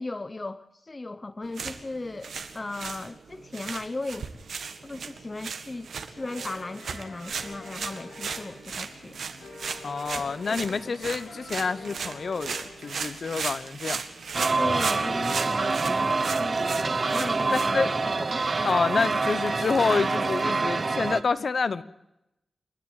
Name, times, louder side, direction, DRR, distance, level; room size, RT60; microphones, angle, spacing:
voice 1, 0.0-4.3 4.8-9.2 10.2-10.3 10.5-10.8 14.6-18.3, left 2 dB, 30° left, 0.7 m, -37 dB
sound 1, 1.4-18.2, right 5 dB, 80° right, 1.8 m, -37 dB
sound 2, 6.2-13.3, left 3 dB, 90° left, 5.9 m, -46 dB
voice 2, 9.8-14.0 16.6-16.7 17.5-18.1 18.6-21.8, left 4 dB, 55° left, 0.9 m, -28 dB
sound 3, 14.3-21.2, right 3 dB, 40° right, 1.0 m, -26 dB
28.5 x 10.5 x 9.1 m
wide cardioid pair, 100°, 0 cm